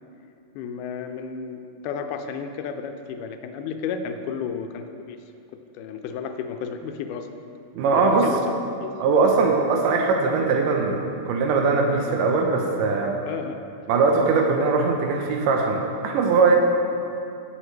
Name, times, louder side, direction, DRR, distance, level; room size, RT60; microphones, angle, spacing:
voice 1, 0.6-5.2 5.7-7.3 7.9-8.9 9.2-9.3 13.3-13.6, left 6 dB, 80° left, 6 dB, 2.1 m, -32 dB
voice 2, 7.7-8.3 9.0-13.2 13.9-16.6, right 4 dB, 90° right, 1 dB, 2.4 m, -21 dB
18.5 x 6.6 x 3.2 m, 2.6 s
omnidirectional pair, 3.7 m